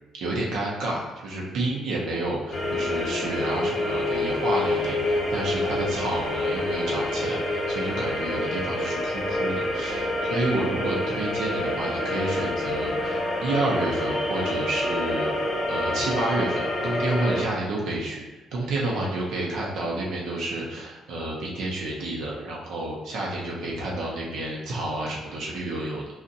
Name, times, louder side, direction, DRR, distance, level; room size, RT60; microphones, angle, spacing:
voice 1, 0.2-15.3 15.7-18.2 18.5-26.0, right 2 dB, 75° right, -3 dB, 0.8 m, -30 dB
sound 1, 2.5-17.4, left 1 dB, 35° left, 0.8 m, -27 dB
4.2 x 2.4 x 2.6 m, 1.1 s
supercardioid pair, 75°, 0 cm